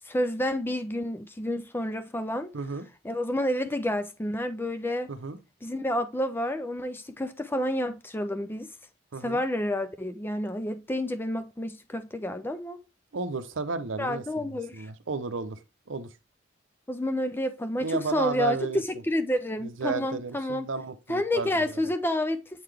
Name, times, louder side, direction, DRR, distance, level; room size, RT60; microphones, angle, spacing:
voice 1, 0.1-2.5 3.0-5.1 5.6-8.7 9.2-12.8 14.0-14.9 16.9-18.6 18.9-20.7 21.1-22.4, left 1 dB, 10° left, 0.4 m, -29 dB
voice 2, 2.5-2.9 5.1-5.4 9.1-9.4 13.1-15.6 15.9-16.1 17.8-18.8 19.6-21.7, right 4 dB, 65° right, 0.7 m, -33 dB
7.8 x 3.9 x 3.3 m
head